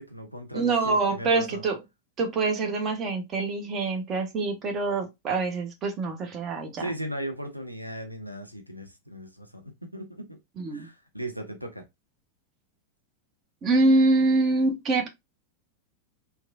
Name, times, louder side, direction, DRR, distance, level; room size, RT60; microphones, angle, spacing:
voice 1, 0.0-1.6 6.8-10.4 10.7-11.8, right 1 dB, 90° right, 0.5 m, -37 dB
voice 2, 0.5-1.8 2.2-6.9 10.6-10.9 13.6-15.1, right 3 dB, 30° right, 0.7 m, -25 dB
3.0 x 2.3 x 2.4 m
figure-of-eight pair, 90°, 0 cm